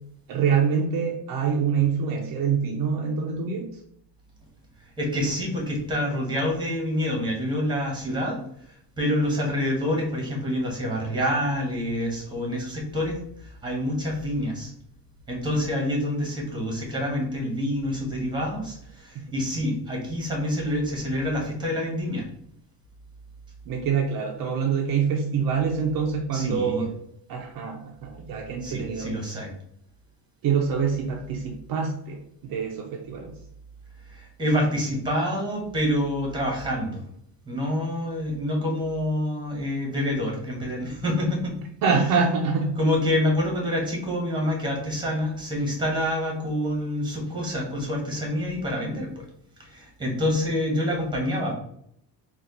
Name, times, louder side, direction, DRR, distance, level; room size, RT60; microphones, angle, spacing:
voice 1, 0.3-3.8 23.7-26.9 27.3-29.1 30.4-33.3 41.8-42.7, right 6 dB, 50° right, 0 dB, 0.6 m, -25 dB
voice 2, 5.0-8.4 9.0-14.7 15.3-22.3 26.3-26.8 28.6-29.5 34.1-37.1 37.5-41.6 42.8-49.2 49.6-51.5, left 1 dB, 10° right, -1 dB, 1.2 m, -27 dB
4.2 x 2.5 x 3.8 m, 0.70 s
cardioid pair, 150°, 44 cm